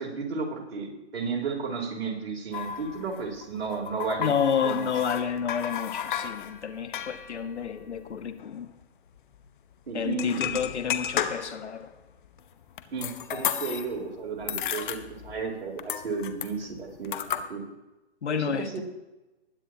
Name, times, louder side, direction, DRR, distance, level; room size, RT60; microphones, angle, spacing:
voice 1, 0.0-4.3 4.6-4.9 9.9-10.5 12.9-15.0 15.2-17.6 18.3-18.8, right 4 dB, 60° right, -1 dB, 3.6 m, -33 dB
sound 1, 2.5-8.5 8.8-8.9 9.2-9.4 10.1-11.8 12.2-14.1 14.4-15.5 15.8-17.4, left 9 dB, 45° left, 1.0 m, -34 dB
voice 2, 4.2-8.7 9.9-11.9 18.2-18.8, left 7 dB, 75° left, 9 dB, 1.5 m, -30 dB
20.5 x 9.0 x 2.9 m, 1.0 s
hypercardioid pair, 145°, 34 cm